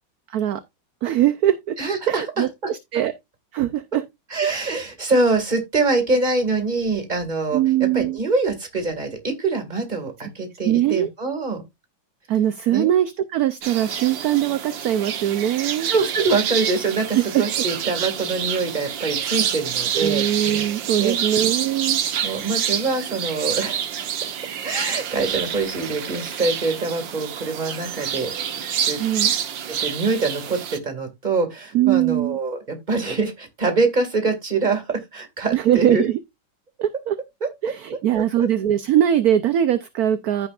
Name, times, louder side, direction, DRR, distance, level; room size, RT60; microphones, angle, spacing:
voice 1, 0.3-0.6 1.0-1.8 2.1-3.1 3.5-4.0 7.5-8.2 10.6-11.1 12.3-15.9 17.1-17.4 19.9-22.0 29.0-29.3 31.7-32.4 35.5-36.2 36.8-37.2 37.6-40.5, right 11 dB, 65° right, 1.1 m, -21 dB
voice 2, 1.8-2.5 4.3-11.6 12.7-12.9 15.9-20.2 21.0-21.4 22.2-23.8 24.6-28.3 28.6-29.0 29.8-36.0 37.4-37.5 38.1-38.2, right 3 dB, 25° right, 2.2 m, -24 dB
sound 1, 13.6-30.8, right 9 dB, 80° right, 1.7 m, -27 dB
15.0 x 5.2 x 2.4 m
omnidirectional pair, 2.0 m